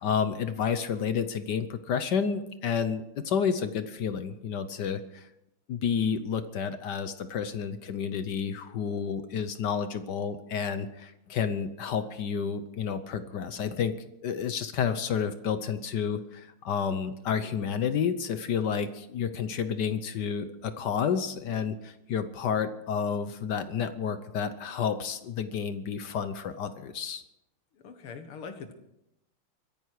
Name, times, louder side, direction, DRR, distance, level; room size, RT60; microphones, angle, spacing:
voice 1, 0.0-5.3 5.7-13.9 14.2-27.2, left 7 dB, 60° left, 11 dB, 1.3 m, -30 dB
voice 2, 27.7-28.7, left 5 dB, 90° left, 8 dB, 2.4 m, -42 dB
24.0 x 10.5 x 4.8 m, 0.85 s
omnidirectional pair, 2.3 m